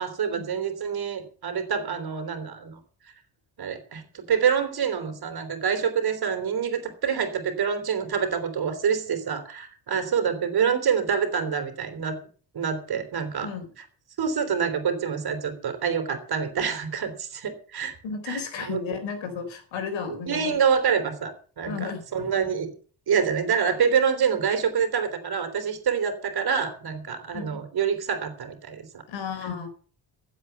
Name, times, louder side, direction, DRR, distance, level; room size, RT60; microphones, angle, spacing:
voice 1, 0.0-2.8 3.6-12.2 12.5-13.5 14.2-17.9 18.3-18.4 18.7-18.8 20.3-22.7 23.1-29.0, right 7 dB, 55° right, 8 dB, 3.5 m, -26 dB
voice 2, 18.0-20.6 21.7-22.3 27.3-27.6 29.1-29.7, left 6 dB, 85° left, 7 dB, 4.3 m, -33 dB
15.5 x 8.3 x 7.0 m, 0.43 s
cardioid pair, 130°, 45 cm